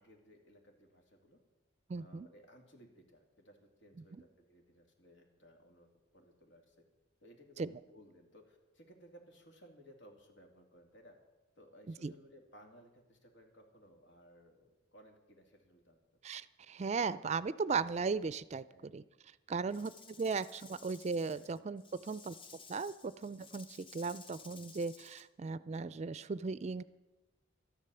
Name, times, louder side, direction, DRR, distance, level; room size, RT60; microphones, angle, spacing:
voice 1, 0.0-1.4 2.0-6.8 7.2-11.2 11.5-16.0 18.7-18.9 19.6-19.9 20.2-20.3 22.5-22.7, equal, 85° left, 2 dB, 2.6 m, -60 dB
voice 2, 1.9-2.3 7.6-7.7 12.0-12.1 16.2-18.6 18.9-19.0 19.5-19.9 20.2-22.4 22.7-26.8, right 4 dB, 35° right, 17 dB, 0.4 m, -37 dB
Rattle / Rattle (instrument), 19.7-25.2, left 5 dB, 25° left, 0.8 m, -56 dB
13.0 x 11.0 x 6.9 m, 1.1 s
head